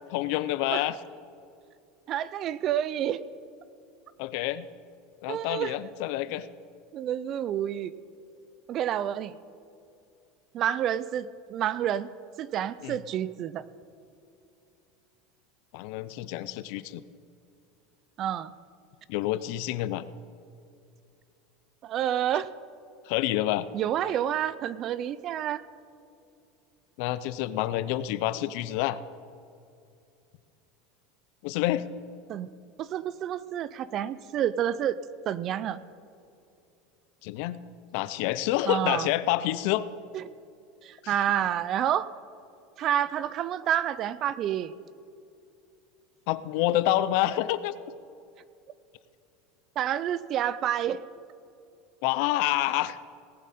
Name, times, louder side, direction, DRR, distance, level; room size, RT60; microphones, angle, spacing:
voice 1, 0.1-1.0 4.2-4.7 5.2-6.5 12.8-13.0 15.7-17.0 19.1-20.0 23.1-23.7 27.0-29.0 31.4-31.9 37.2-37.6 37.9-39.8 41.0-41.2 46.3-47.7 52.0-53.0, left 14 dB, 60° left, 16 dB, 0.5 m, -28 dB
voice 2, 2.1-3.2 5.3-5.8 6.9-7.9 8.7-9.4 10.5-12.1 12.4-13.6 18.2-18.5 21.8-22.5 23.7-25.6 32.3-32.5 32.8-35.0 35.3-35.8 38.7-39.1 40.1-40.2 40.8-42.1 42.8-44.7 49.8-51.0, right 10 dB, 35° right, 17 dB, 0.4 m, -29 dB
18.5 x 11.0 x 4.2 m, 2.6 s
supercardioid pair, 160°, 0 cm